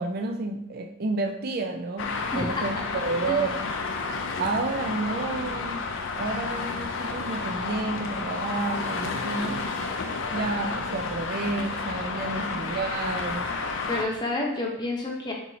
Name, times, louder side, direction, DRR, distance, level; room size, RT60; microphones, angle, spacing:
voice 1, 0.0-3.7 4.4-5.8 6.2-9.6 10.3-13.5, right 3 dB, 45° right, 4 dB, 0.4 m, -30 dB
Traffic noise roadway noise, 2.0-14.0, left 4 dB, 60° left, 0.5 m, -31 dB
voice 2, 2.3-2.6 3.3-3.4 13.9-15.3, left 2 dB, 20° left, -1 dB, 0.8 m, -29 dB
4.5 x 4.1 x 2.8 m, 0.79 s
head